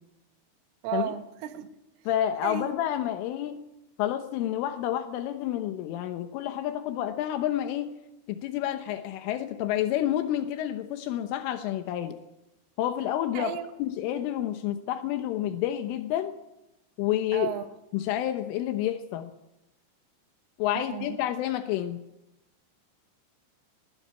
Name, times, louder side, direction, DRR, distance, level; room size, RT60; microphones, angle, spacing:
voice 1, 0.8-1.7 2.4-2.7 13.3-13.7 17.3-17.7 20.8-21.2, right 10 dB, 85° right, 3.9 m, -33 dB
voice 2, 2.1-3.6 4.0-7.9 8.3-12.2 12.8-16.3 17.0-17.5 17.9-19.3 20.6-22.0, left 12 dB, 85° left, 3.6 m, -29 dB
20.0 x 16.0 x 8.3 m
omnidirectional pair, 5.6 m